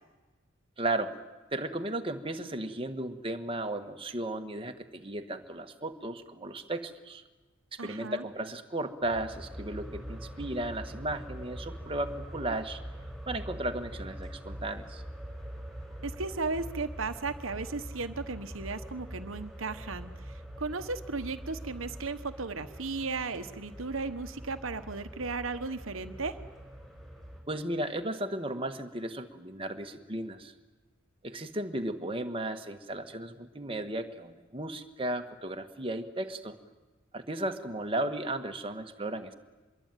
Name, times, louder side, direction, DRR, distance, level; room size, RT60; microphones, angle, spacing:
voice 1, 0.8-1.2 1.5-7.2 7.8-12.8 13.3-15.0 27.5-30.5 31.2-36.6 37.1-39.3, right 1 dB, 25° right, 5 dB, 1.6 m, -35 dB
voice 2, 7.8-8.2 16.0-20.1 20.6-26.4, right 3 dB, 75° right, 9 dB, 1.2 m, -35 dB
sound 1, 9.0-27.4, equal, ahead, 6.2 m, -43 dB
25.5 x 22.0 x 9.2 m, 1.2 s
head